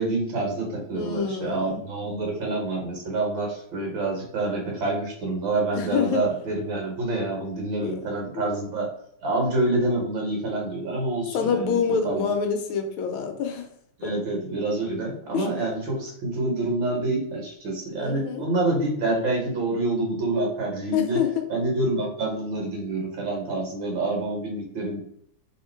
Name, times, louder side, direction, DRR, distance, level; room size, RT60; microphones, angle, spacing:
voice 1, 0.0-8.9 9.2-11.8 12.0-12.3 14.0-21.2 21.5-25.0, right 2 dB, 65° right, 0 dB, 1.9 m, -27 dB
voice 2, 0.9-1.8 5.7-6.3 7.8-8.1 8.3-8.6 11.3-13.7 14.0-14.1 15.3-15.5 18.0-18.4 20.9-21.4, left 6 dB, 75° left, 5 dB, 1.4 m, -26 dB
3.6 x 3.0 x 4.5 m, 0.68 s
omnidirectional pair, 2.4 m